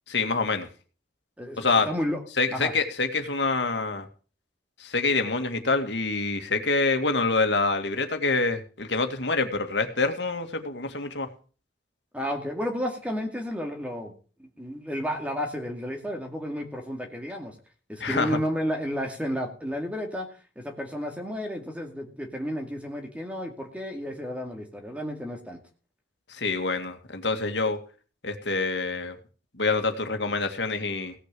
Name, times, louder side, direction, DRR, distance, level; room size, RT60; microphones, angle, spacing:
voice 1, 0.1-0.7 1.6-1.9 2.4-4.1 4.8-11.3 18.0-18.4 26.3-27.8 28.2-29.2 29.6-31.1, left 3 dB, 90° left, 6 dB, 2.1 m, -26 dB
voice 2, 1.4-2.2 2.5-2.7 12.1-14.1 14.4-17.5 17.9-20.3 20.6-25.6, equal, 10° right, 2 dB, 2.2 m, -32 dB
17.0 x 6.5 x 7.6 m, 0.39 s
head